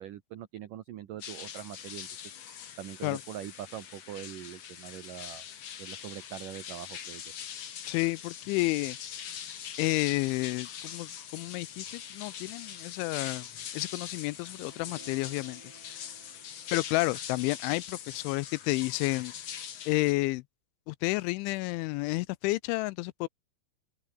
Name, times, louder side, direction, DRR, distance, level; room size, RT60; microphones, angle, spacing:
voice 1, 0.0-2.1 2.8-5.4 5.8-7.2, right 11 dB, 80° right, 1.9 m, -42 dB
sound 1, 1.2-20.1, left 9 dB, 60° left, 1.7 m, -42 dB
voice 2, 7.9-9.0 9.8-13.5 13.7-15.6 16.7-19.3 19.9-20.4 20.9-23.3, left 22 dB, 85° left, 2.9 m, -30 dB
sound 2, 14.0-18.1, right 5 dB, 40° right, 6.1 m, -58 dB
open air
omnidirectional pair, 5.6 m